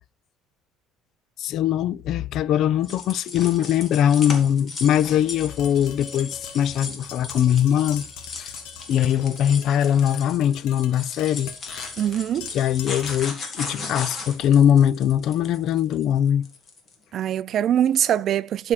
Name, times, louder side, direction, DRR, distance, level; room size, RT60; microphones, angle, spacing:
voice 1, 1.4-8.1 8.4-8.5 8.9-11.5 12.5-16.5, left 10 dB, 55° left, 0.4 m, -21 dB
sound 1, 2.8-16.9, left 4 dB, 35° left, 2.3 m, -37 dB
Tap, 5.1-13.4, left 8 dB, 85° left, 1.4 m, -43 dB
voice 2, 12.0-12.5 17.1-18.7, right 10 dB, 45° right, 0.3 m, -23 dB
11.0 x 6.0 x 4.2 m
cardioid pair, 150°, 0 cm